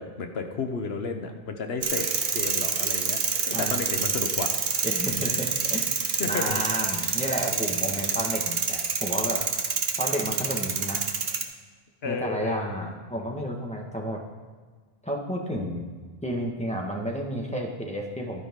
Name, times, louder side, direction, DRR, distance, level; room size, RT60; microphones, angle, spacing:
voice 1, 0.0-2.1 2.3-3.2 3.5-4.5 6.2-6.6 12.0-12.9, left 4 dB, 80° left, 6 dB, 1.2 m, -32 dB
sound 1, 1.8-11.4, right 5 dB, 75° right, 1.2 m, -27 dB
voice 2, 3.5-3.9 4.8-9.4 10.0-11.0 12.0-14.2 15.0-15.8 16.2-18.4, equal, 5° left, 0 dB, 1.6 m, -31 dB
12.0 x 9.9 x 3.8 m, 1.5 s
omnidirectional pair, 1.0 m